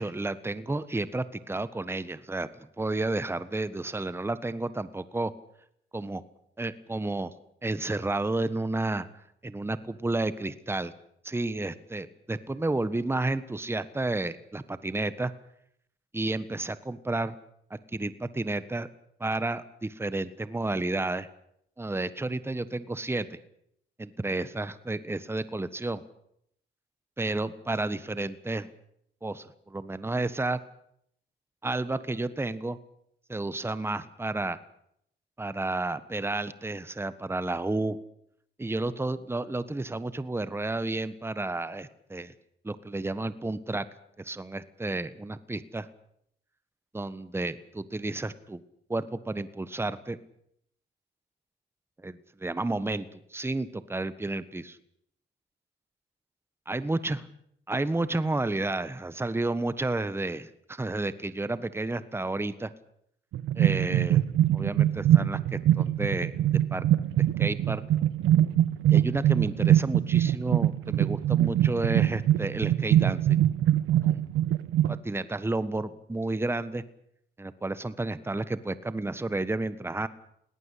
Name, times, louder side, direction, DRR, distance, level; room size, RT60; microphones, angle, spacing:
voice 1, 0.0-5.3 5.9-6.2 6.6-7.3 7.6-9.1 9.4-10.9 11.2-15.3 16.1-17.3 17.7-18.9 19.2-21.3 21.8-23.4 24.0-26.0 27.2-28.7 29.2-30.6 31.6-32.8 33.3-34.6 35.4-38.0 38.6-42.3 42.6-43.8 44.2-45.9 46.9-48.6 48.9-50.2 52.0-54.8 56.7-57.3 57.7-62.7 63.5-64.2 64.5-66.8 67.2-67.8 68.9-73.4 74.0-74.2 74.9-76.8 77.4-80.1, right 2 dB, 10° right, 14 dB, 1.4 m, -31 dB
sound 1, 63.3-75.0, right 12 dB, 85° right, 1.1 m, -23 dB
21.0 x 18.0 x 8.5 m, 0.72 s
cardioid pair, 90°, 20 cm